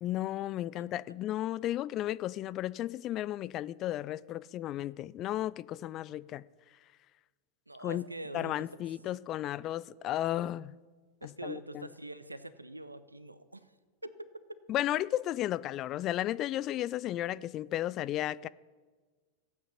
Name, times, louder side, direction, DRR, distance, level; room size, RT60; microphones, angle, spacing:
voice 1, 0.0-6.4 7.8-8.0 8.3-10.7 11.2-11.9 14.7-18.5, left 13 dB, 35° left, 0.3 m, -34 dB
voice 2, 7.7-8.7 11.2-13.6 14.0-14.3, right 2 dB, 85° right, 0.7 m, -44 dB
15.0 x 8.7 x 5.7 m
figure-of-eight pair, 90°, 0 cm